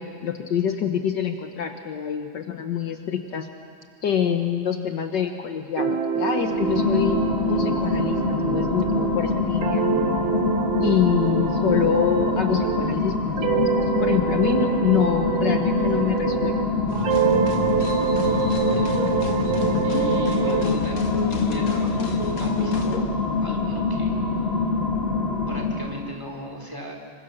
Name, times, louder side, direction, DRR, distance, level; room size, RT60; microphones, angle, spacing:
voice 1, 0.0-3.5 4.0-10.0 10.8-16.7, left 8 dB, 65° left, 6 dB, 1.7 m, -26 dB
sound 1, 5.8-13.0 13.4-16.7 17.0-20.7, right 7 dB, 80° right, 2.2 m, -26 dB
sound 2, 6.4-26.1, left 3 dB, 30° left, 2.0 m, -25 dB
sound 3, 16.9-23.0, left 6 dB, 85° left, 2.4 m, -31 dB
voice 2, 18.3-19.0 19.8-21.0 21.3-24.1 25.5-27.0, equal, 10° right, 0 dB, 3.6 m, -36 dB
27.0 x 24.0 x 6.6 m, 2.2 s
omnidirectional pair, 2.1 m